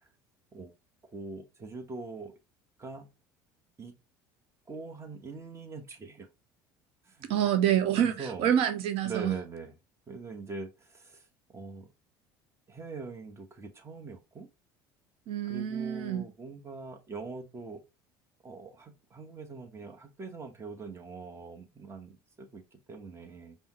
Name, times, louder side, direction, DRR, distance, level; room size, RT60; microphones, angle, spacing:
voice 1, 1.1-2.3 2.8-3.1 3.8-3.9 4.7-6.3 7.0-7.3 7.9-8.5 9.0-9.8 10.1-11.9 12.7-14.5 15.5-17.8 18.4-23.6, right 4 dB, 25° right, 1.1 m, -42 dB
voice 2, 7.2-9.4 15.3-16.2, right 10 dB, 60° right, 0.7 m, -27 dB
5.4 x 2.2 x 2.9 m
hypercardioid pair, 70°, 11 cm